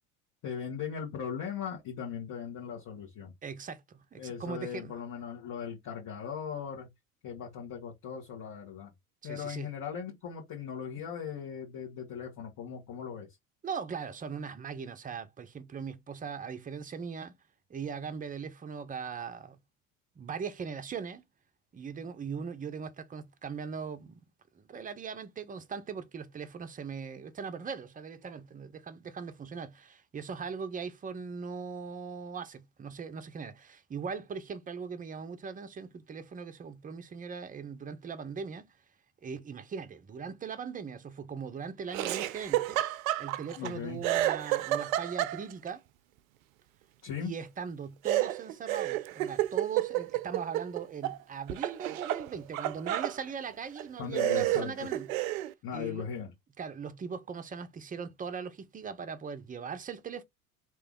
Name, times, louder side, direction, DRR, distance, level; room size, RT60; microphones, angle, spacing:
voice 1, 0.4-3.3 4.2-6.9 7.2-8.9 9.2-13.3 43.6-44.0 47.0-47.3 54.0-54.9 55.6-56.3, left 7 dB, 45° left, 1.9 m, -38 dB
voice 2, 3.4-4.9 9.2-9.7 13.6-17.4 17.7-19.6 20.2-21.2 21.7-24.2 24.5-38.7 39.2-42.8 43.2-45.8 47.2-55.1 55.7-56.1 56.6-60.2, right 6 dB, 20° right, 0.7 m, -40 dB
Laughter, 41.9-43.7 44.0-45.7 48.0-51.2 51.5-53.2 53.8-53.9 54.2-55.5, right 14 dB, 65° right, 0.6 m, -30 dB
3.3 x 3.0 x 3.7 m
figure-of-eight pair, 75°, 45 cm